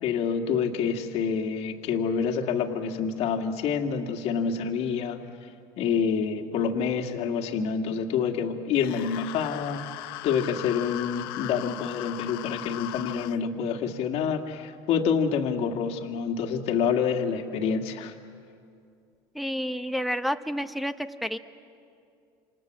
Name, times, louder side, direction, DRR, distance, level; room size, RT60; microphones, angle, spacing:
voice 1, 0.0-5.5 5.8-9.9 10.2-18.1, left 6 dB, 60° left, 5 dB, 2.2 m, -27 dB
sound 1, 8.8-13.4, left 17 dB, 85° left, 0.8 m, -38 dB
voice 2, 19.3-21.4, equal, ahead, 8 dB, 1.1 m, -30 dB
27.5 x 27.0 x 7.7 m, 2.4 s
supercardioid pair, 105°, 12 cm